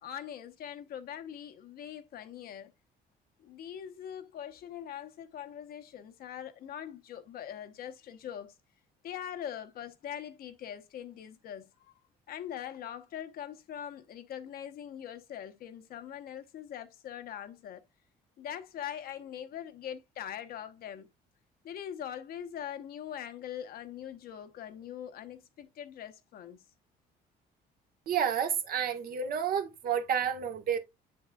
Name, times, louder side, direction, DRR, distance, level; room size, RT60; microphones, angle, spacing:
voice 1, 0.0-2.7 3.4-8.5 9.0-11.9 12.3-17.8 18.4-21.1 21.6-26.6, left 9 dB, 65° left, 1.0 m, -42 dB
voice 2, 28.1-30.8, right 8 dB, 60° right, 1.4 m, -30 dB
7.1 x 6.7 x 2.3 m
cardioid pair, 110°, 17 cm